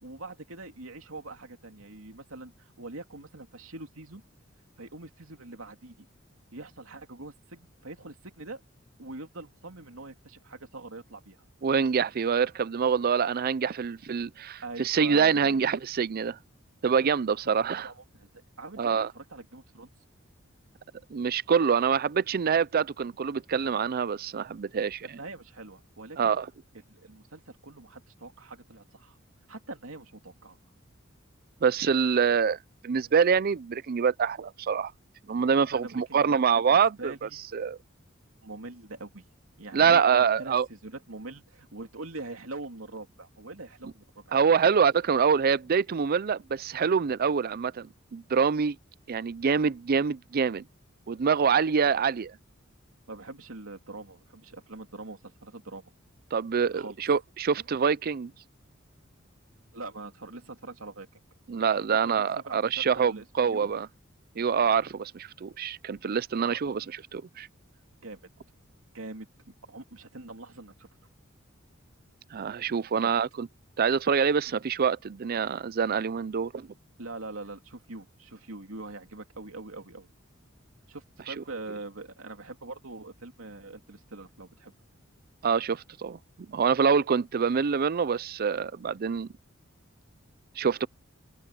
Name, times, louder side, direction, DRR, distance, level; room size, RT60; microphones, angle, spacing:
voice 1, 0.0-4.2 4.8-6.1 6.5-8.6 9.0-11.4 14.6-15.7 17.7-18.3 18.6-19.9 25.0-26.3 26.9-29.2 29.5-30.6 35.7-37.4 38.4-39.2 39.6-44.4 51.9-52.0 53.1-55.9 56.7-57.0 59.7-61.1 61.9-63.7 66.4-66.8 68.0-68.3 68.9-69.3 69.7-70.9 72.9-73.1 77.0-80.1 80.9-84.7, right 2 dB, 85° right, 3.0 m, -43 dB
voice 2, 11.6-16.4 16.8-17.9 18.8-19.1 21.1-25.1 26.2-26.5 31.6-34.9 35.3-37.8 39.7-40.7 44.3-48.8 49.1-50.6 51.1-52.3 56.3-58.3 61.5-63.9 64.4-67.5 72.3-73.5 73.8-76.7 81.3-81.4 85.4-86.2 86.5-89.3 90.6-90.9, right 6 dB, 50° right, 0.4 m, -25 dB
head